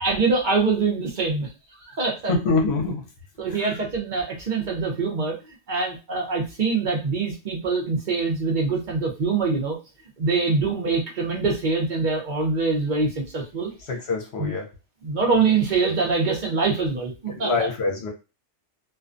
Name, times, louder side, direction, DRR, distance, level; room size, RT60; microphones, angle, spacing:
voice 1, 0.0-1.5 1.9-2.3 3.4-5.4 5.7-9.8 10.2-13.7 14.4-14.5 15.0-17.5, right 4 dB, 50° right, 1 dB, 0.8 m, -24 dB
voice 2, 2.3-3.0 3.5-3.8 13.8-14.7 17.3-18.1, left 3 dB, 65° left, 1 dB, 0.9 m, -25 dB
2.5 x 2.2 x 2.5 m, 0.29 s
omnidirectional pair, 1.2 m